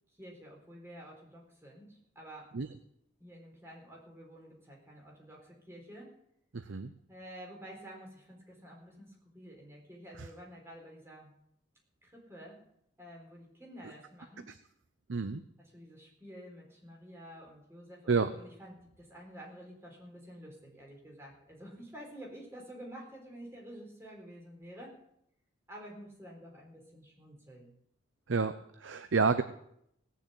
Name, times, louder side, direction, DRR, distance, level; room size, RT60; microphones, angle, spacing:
voice 1, 0.2-2.5 3.2-6.1 7.1-11.3 12.0-12.6 13.0-14.5 15.6-24.9 25.7-27.7, equal, 15° right, -2 dB, 4.2 m, -50 dB
voice 2, 6.5-6.9 10.2-10.3 15.1-15.4 18.1-18.3 28.3-29.4, right 4 dB, 70° right, 11 dB, 0.7 m, -29 dB
18.0 x 7.0 x 8.2 m, 0.75 s
head